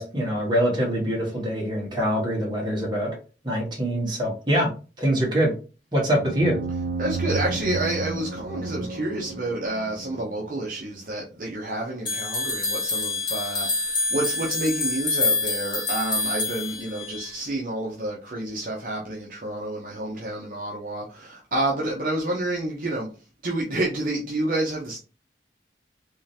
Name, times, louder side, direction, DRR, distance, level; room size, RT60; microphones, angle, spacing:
voice 1, 0.0-3.2 3.4-4.7 5.0-5.5 5.9-6.6, equal, 25° right, 1.5 m, -24 dB
sound 1, 6.1-10.7, right 3 dB, 85° right, 0.5 m, -32 dB
voice 2, 7.0-23.1 23.4-25.0, right 1 dB, 50° right, 0.7 m, -29 dB
sound 2, 12.1-17.3, left 3 dB, 25° left, 0.7 m, -27 dB
3.7 x 3.2 x 2.8 m
head